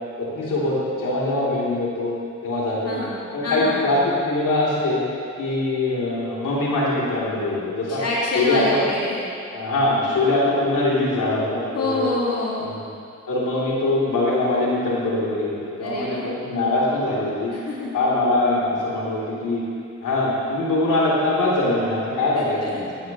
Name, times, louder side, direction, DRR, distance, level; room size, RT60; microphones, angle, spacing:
voice 1, 0.2-2.1 2.4-3.0 3.3-5.0 5.4-8.0 8.3-8.8 9.5-12.0 12.6-12.8 13.3-17.5 17.9-19.6 20.0-23.1, left 2 dB, 75° left, -6 dB, 2.9 m, -22 dB
voice 2, 2.9-3.9 7.9-9.2 11.7-12.7 15.8-16.3 17.5-17.9 22.4-22.8, left 2 dB, 50° left, -6 dB, 2.0 m, -26 dB
14.0 x 11.5 x 3.0 m, 2.5 s
supercardioid pair, 40°, 32 cm